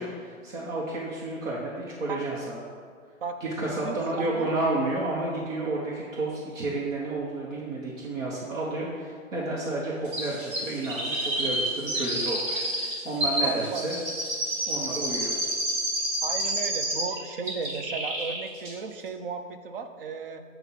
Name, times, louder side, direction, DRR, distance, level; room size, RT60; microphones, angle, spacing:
voice 1, 0.0-2.6 3.4-13.9 14.7-15.3, right 2 dB, 65° right, -5 dB, 1.3 m, -31 dB
voice 2, 3.8-4.5 13.4-13.8 16.2-20.4, right 5 dB, 45° right, 7 dB, 0.5 m, -35 dB
Chirp tweet, 10.1-17.2 17.5-18.4 18.7-18.8, right 1 dB, 25° right, 1.0 m, -29 dB
7.8 x 2.7 x 5.7 m, 2.1 s
hypercardioid pair, 160°, 40 cm